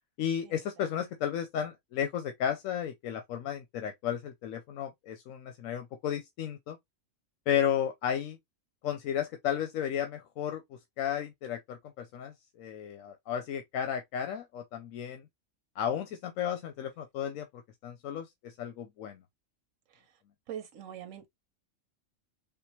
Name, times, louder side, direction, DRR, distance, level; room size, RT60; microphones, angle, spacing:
voice 1, 0.2-6.8 7.5-8.4 8.8-10.6 11.0-15.2 15.8-19.2, left 9 dB, 90° left, 1.0 m, -33 dB
voice 2, 20.5-21.3, right 9 dB, 85° right, 1.1 m, -42 dB
3.5 x 2.5 x 2.9 m
omnidirectional pair, 1.4 m